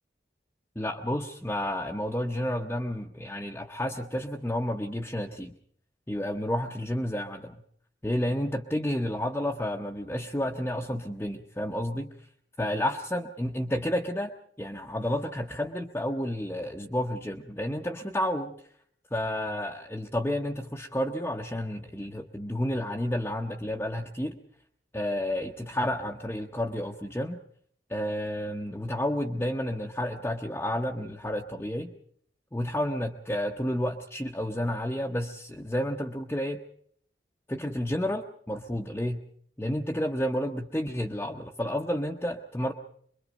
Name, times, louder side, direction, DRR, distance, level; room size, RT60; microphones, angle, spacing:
voice 1, 0.8-5.5 6.1-7.6 8.0-12.1 12.6-18.5 19.1-24.3 24.9-27.4 27.9-31.9 32.5-36.6 37.5-39.2 39.6-42.7, left 1 dB, 10° left, 0 dB, 0.8 m, -31 dB
24.5 x 22.0 x 5.1 m, 0.62 s
head